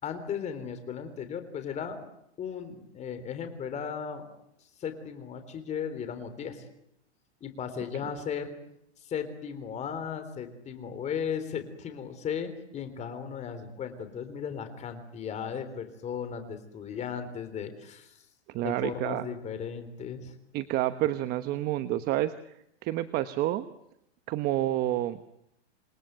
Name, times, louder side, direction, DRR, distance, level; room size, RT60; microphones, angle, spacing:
voice 1, 0.0-2.1 2.4-4.3 4.8-6.7 7.4-8.5 9.0-18.2 18.6-20.3, left 7 dB, 20° left, 9 dB, 3.6 m, -36 dB
voice 2, 18.5-19.3 20.5-22.3 22.8-23.7 24.3-25.3, right 14 dB, 30° right, 12 dB, 1.0 m, -29 dB
28.0 x 20.5 x 9.2 m, 0.77 s
supercardioid pair, 150°, 33 cm